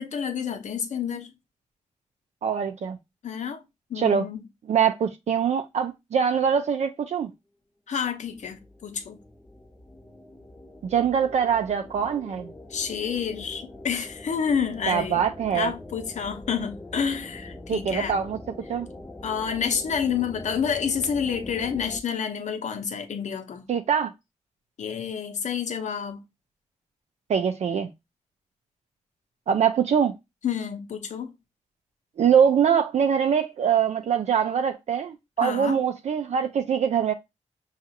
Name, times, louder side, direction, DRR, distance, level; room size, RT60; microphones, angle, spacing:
voice 1, 0.0-1.3 3.2-3.6 3.9-4.4 7.9-9.2 12.7-15.2 15.5-18.2 19.2-23.6 24.8-26.2 30.4-31.3 35.4-35.8, left 7 dB, 75° left, 0.8 m, -29 dB
voice 2, 2.4-3.0 4.0-4.2 4.7-7.3 10.8-12.5 14.9-15.7 17.7-18.4 18.7-18.9 23.7-24.1 27.3-27.9 29.5-30.2 32.2-37.1, right 7 dB, 65° right, 0.4 m, -23 dB
sound 1, 8.2-22.0, left 2 dB, 15° left, 0.5 m, -43 dB
5.8 x 2.4 x 2.8 m
wide cardioid pair, 125°, 12 cm